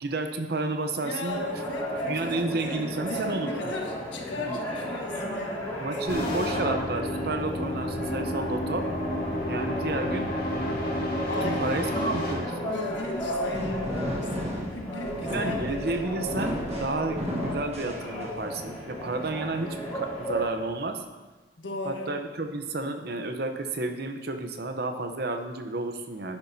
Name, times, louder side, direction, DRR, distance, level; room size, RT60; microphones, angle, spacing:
voice 1, 0.0-1.4 2.1-3.7 4.4-4.6 5.8-8.9 9.4-10.7 11.4-12.7 15.2-21.0 21.8-26.4, right 2 dB, 55° right, 6 dB, 0.8 m, -31 dB
voice 2, 1.0-5.6 5.9-6.0 11.3-11.9 12.6-15.8 21.6-22.2, left 2 dB, 80° left, 1 dB, 1.6 m, -37 dB
sound 1, 1.3-20.5, equal, 10° left, 2.9 m, -34 dB
sound 2, 6.1-12.3, left 1 dB, 50° left, 2.6 m, -30 dB
sound 3, 12.9-18.6, equal, 35° right, 1.4 m, -33 dB
11.0 x 10.5 x 2.8 m, 1.2 s
head